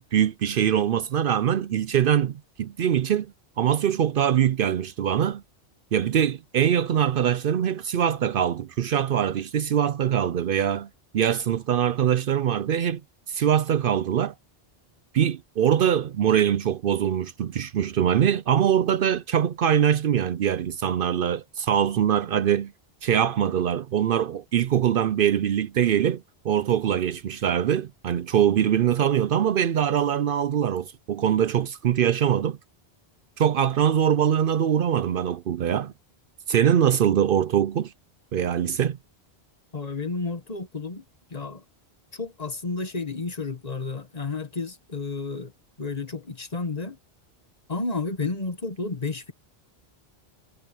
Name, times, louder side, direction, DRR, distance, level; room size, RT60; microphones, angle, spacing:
voice 1, 0.0-3.3 3.6-5.4 5.9-10.9 11.1-13.0 13.3-14.3 15.1-22.7 23.0-32.6 33.4-35.9 36.5-37.9 38.3-39.0, right 9 dB, 65° right, 0.7 m, -23 dB
voice 2, 39.7-41.0 41.3-41.6 42.1-45.5 45.8-47.0 47.7-49.3, left 3 dB, 40° left, 1.4 m, -31 dB
omnidirectional pair, 1.1 m